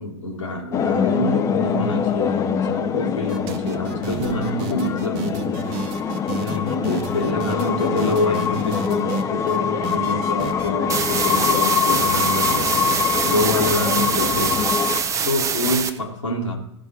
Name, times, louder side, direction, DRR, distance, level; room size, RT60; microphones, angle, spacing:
voice 1, 0.0-5.8 6.4-12.8 13.2-14.7 15.2-16.6, left 2 dB, 80° left, -2 dB, 2.0 m, -26 dB
sound 1, 0.7-15.0, left 7 dB, 20° left, 0.6 m, -24 dB
sound 2, 3.3-9.6 9.8-10.7 11.0-12.2 12.5-13.7 14.0-14.6, right 7 dB, 40° right, 1.1 m, -32 dB
sound 3, 10.9-15.9, right 7 dB, 20° right, 0.8 m, -24 dB
15.0 x 5.6 x 4.4 m, 0.78 s
figure-of-eight pair, 95°, 16 cm